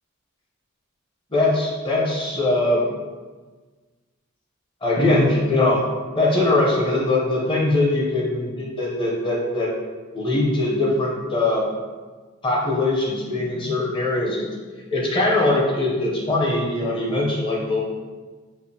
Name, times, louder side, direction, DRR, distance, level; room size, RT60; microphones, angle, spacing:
voice 1, 1.3-2.8 4.8-5.8 6.2-9.7 10.1-11.6 12.4-14.5 14.9-17.8, left 2 dB, 25° left, -3 dB, 0.7 m, -21 dB
4.9 x 2.5 x 2.8 m, 1.4 s
head